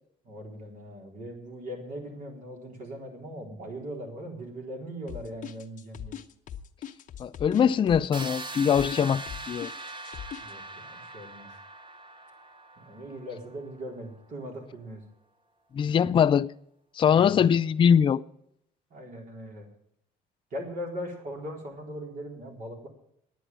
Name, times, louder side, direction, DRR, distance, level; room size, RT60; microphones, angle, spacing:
voice 1, 0.2-6.2 10.4-11.5 12.8-15.0 17.0-17.5 18.9-19.7 20.5-22.9, equal, 55° right, 4.2 m, -40 dB
sound 1, 5.1-10.5, left 10 dB, 50° left, 1.0 m, -40 dB
voice 2, 7.2-9.7 15.7-16.5 17.0-18.2, left 8 dB, 30° left, 0.4 m, -22 dB
sound 2, 8.1-13.9, right 2 dB, 30° right, 1.1 m, -41 dB
10.5 x 9.3 x 8.8 m
cardioid pair, 110°, 17 cm